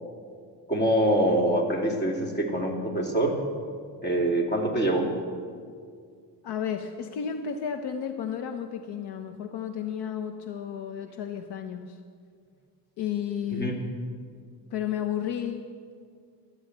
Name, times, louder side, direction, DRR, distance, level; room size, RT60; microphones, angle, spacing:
voice 1, 0.7-3.4 4.0-5.1 13.5-13.8, right 1 dB, 25° left, 1 dB, 2.7 m, -24 dB
voice 2, 6.4-12.0 13.0-13.7 14.7-15.6, left 8 dB, 65° left, 7 dB, 1.0 m, -32 dB
14.0 x 10.5 x 7.9 m, 2.2 s
cardioid pair, 110°, 44 cm